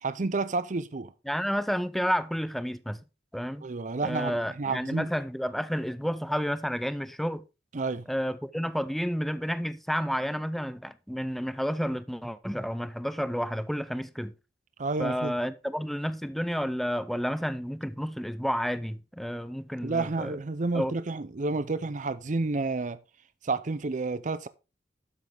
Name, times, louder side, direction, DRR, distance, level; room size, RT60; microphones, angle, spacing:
voice 1, 0.0-1.1 3.6-5.1 7.7-8.0 14.8-15.3 19.8-23.0 23.4-24.5, right 3 dB, 45° right, 0.6 m, -30 dB
voice 2, 1.3-3.0 3.3-3.7 4.0-7.4 8.1-14.3 15.0-20.4 20.7-21.0, equal, ahead, 0.6 m, -30 dB
12.0 x 7.3 x 3.5 m
head